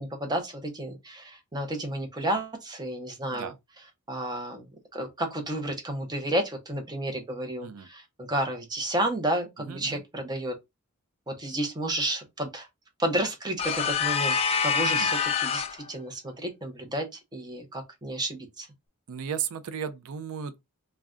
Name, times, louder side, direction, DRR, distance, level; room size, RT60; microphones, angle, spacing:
voice 1, 0.0-3.5 4.1-4.7 4.9-10.5 11.3-12.7 13.0-14.4 14.6-17.1 17.3-18.7, right 1 dB, 20° right, 0.7 m, -31 dB
voice 2, 9.7-10.0 14.8-15.1 19.1-20.6, right 7 dB, 65° right, 0.4 m, -35 dB
sound 1, 13.6-15.8, left 6 dB, 25° left, 0.3 m, -26 dB
2.3 x 2.2 x 3.6 m
head